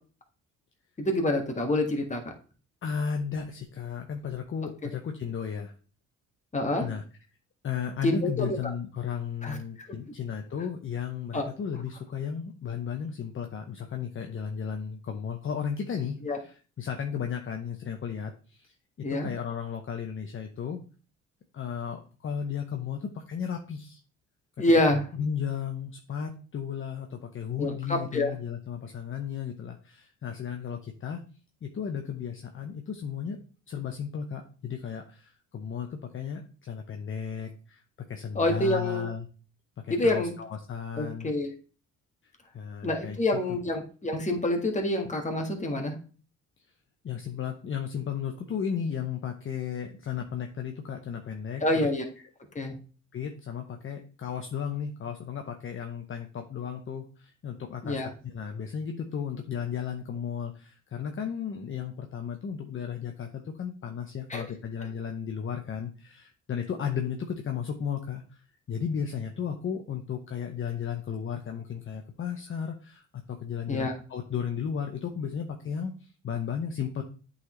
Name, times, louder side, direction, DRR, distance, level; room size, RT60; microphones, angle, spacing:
voice 1, 1.0-2.2 6.5-6.9 8.0-8.6 9.4-10.0 11.3-11.5 16.2-16.4 19.0-19.3 24.6-25.0 27.6-28.3 38.3-39.1 39.9-40.3 41.0-41.5 42.8-45.9 51.6-52.0 52.5-52.8 57.8-58.1 64.3-64.5 73.7-73.9, left 1 dB, 25° left, 3 dB, 1.6 m, -27 dB
voice 2, 2.8-5.7 6.8-7.0 7.6-18.7 19.1-20.8 21.5-24.0 24.9-31.2 31.6-33.4 33.7-37.8 38.1-39.3 39.8-41.3 42.2-43.4 47.0-51.6 53.1-77.0, left 7 dB, 40° left, 4 dB, 0.8 m, -34 dB
8.4 x 4.1 x 3.1 m, 0.38 s
cardioid pair, 90°, 30 cm